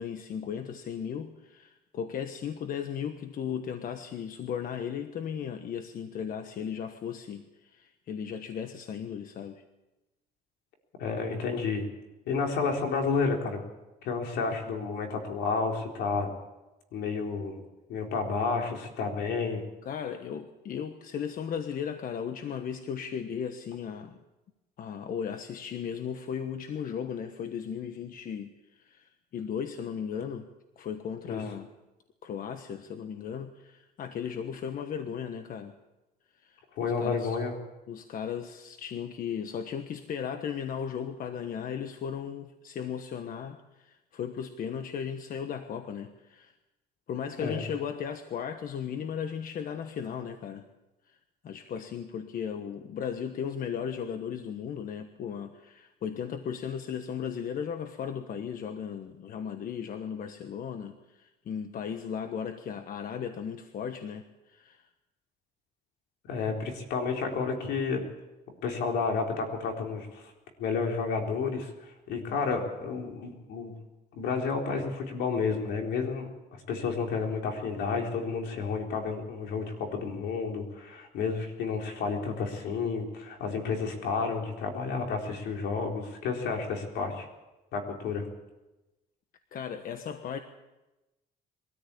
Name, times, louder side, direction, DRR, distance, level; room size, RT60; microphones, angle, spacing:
voice 1, 0.0-9.6 19.8-24.2 24.8-30.5 30.8-31.7 32.2-35.8 36.4-37.4 37.9-46.5 47.1-50.6 51.1-51.2 51.4-64.9 89.5-90.4, left 7 dB, 55° left, 8 dB, 1.3 m, -36 dB
voice 2, 11.0-11.9 12.3-13.6 14.0-16.3 16.9-17.6 17.9-19.6 31.3-31.4 36.8-37.5 47.4-47.6 66.3-68.1 68.6-70.3 70.6-73.7 74.1-76.3 76.7-87.3 87.7-88.3, left 4 dB, 80° left, 2 dB, 4.2 m, -31 dB
22.5 x 13.5 x 8.5 m, 1.0 s
cardioid pair, 110°, 17 cm